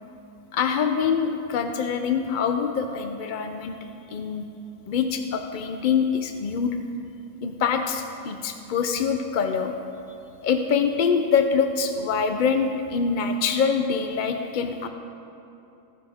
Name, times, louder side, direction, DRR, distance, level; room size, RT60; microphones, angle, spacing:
voice 1, 0.5-3.8 4.1-4.4 4.9-6.8 7.4-9.7 10.4-14.9, left 6 dB, 60° left, 6 dB, 0.5 m, -24 dB
20.0 x 9.5 x 3.5 m, 2.8 s
omnidirectional pair, 1.5 m